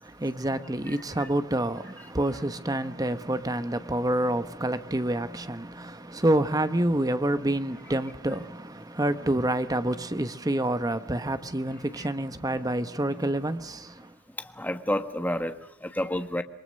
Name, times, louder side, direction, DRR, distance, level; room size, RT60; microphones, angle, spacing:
voice 1, 0.0-14.1, right 1 dB, 20° right, 1.1 m, -28 dB
voice 2, 14.4-16.4, left 1 dB, 10° left, 1.3 m, -30 dB
28.0 x 22.5 x 6.6 m
head